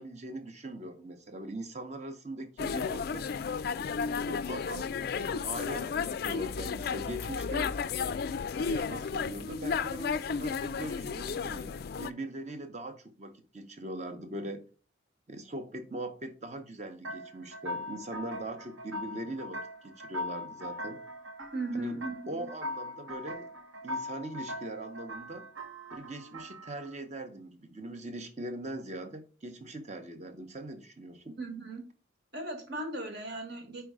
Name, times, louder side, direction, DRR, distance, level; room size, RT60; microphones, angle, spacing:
voice 1, 0.0-3.3 4.2-7.7 8.7-14.7 15.3-21.0 21.7-23.5 23.8-25.5 25.9-31.4, right 1 dB, 35° right, 0.9 m, -41 dB
sound 1, 2.6-12.1, left 6 dB, 50° left, 0.3 m, -33 dB
sound 2, 17.0-26.9, left 1 dB, 80° right, 1.0 m, -41 dB
voice 2, 21.5-22.5 31.4-31.8 32.3-33.8, right 2 dB, 55° right, 1.6 m, -37 dB
5.2 x 4.6 x 4.7 m
head